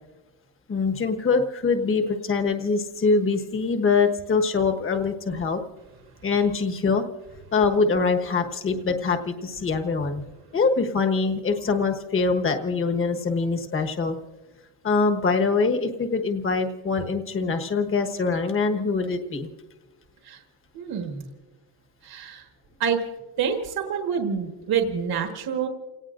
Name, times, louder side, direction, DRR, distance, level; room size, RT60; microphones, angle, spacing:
voice 1, 0.7-5.6 6.2-7.0 7.5-10.2 10.5-14.2 14.8-19.5, left 4 dB, 25° left, 6 dB, 1.3 m, -24 dB
voice 2, 20.7-21.3 22.0-22.5 22.8-23.0 23.4-25.7, right 7 dB, 50° right, 4 dB, 1.5 m, -27 dB
29.5 x 18.5 x 2.5 m, 1.2 s
cardioid pair, 160°, 49 cm